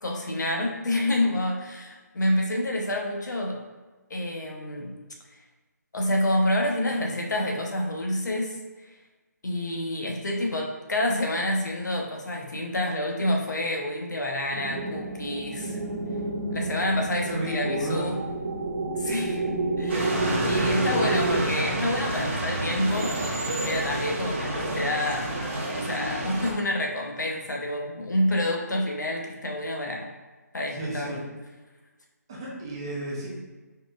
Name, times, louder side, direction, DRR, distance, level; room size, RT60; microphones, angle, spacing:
voice 1, 0.0-3.6 4.1-4.9 5.9-8.6 8.8-8.9 9.4-15.8 16.5-18.2 18.9-23.2 23.6-25.3 25.8-30.1 30.5-31.2, left 1 dB, 85° left, 1 dB, 1.0 m, -28 dB
sound 1, 14.5-21.4, right 2 dB, 65° right, 1.2 m, -30 dB
voice 2, 17.2-18.1 30.7-31.2 32.3-33.3, right 1 dB, 15° right, -5 dB, 0.5 m, -31 dB
sound 2, 19.9-26.5, right 1 dB, 40° right, 0.9 m, -29 dB
4.3 x 4.0 x 2.5 m, 1.3 s
hypercardioid pair, 175°, 9 cm